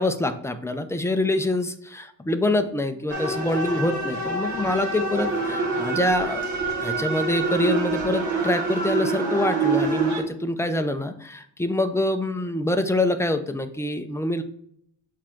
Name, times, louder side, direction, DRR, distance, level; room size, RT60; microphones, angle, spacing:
voice 1, 0.0-6.5 6.8-14.4, left 1 dB, 5° left, 7 dB, 0.6 m, -25 dB
sound 1, 3.1-10.2, right 3 dB, 45° right, 1.8 m, -26 dB
7.2 x 3.7 x 4.5 m, 0.68 s
cardioid pair, 105°, 43 cm